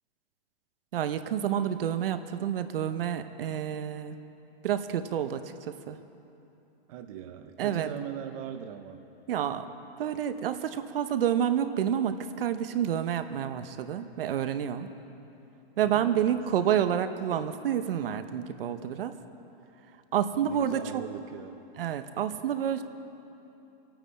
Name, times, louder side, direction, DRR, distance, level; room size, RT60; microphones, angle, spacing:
voice 1, 0.9-4.2 4.6-5.4 5.9-6.0 7.6-7.9 9.3-9.7 10.0-14.9 15.8-19.1 20.1-20.8 21.8-22.8, right 9 dB, 65° right, 10 dB, 0.8 m, -29 dB
voice 2, 6.9-9.1 15.8-16.4 20.4-21.6, right 9 dB, 35° right, 6 dB, 0.7 m, -40 dB
25.0 x 9.0 x 4.2 m, 2.9 s
hypercardioid pair, 160°, 30 cm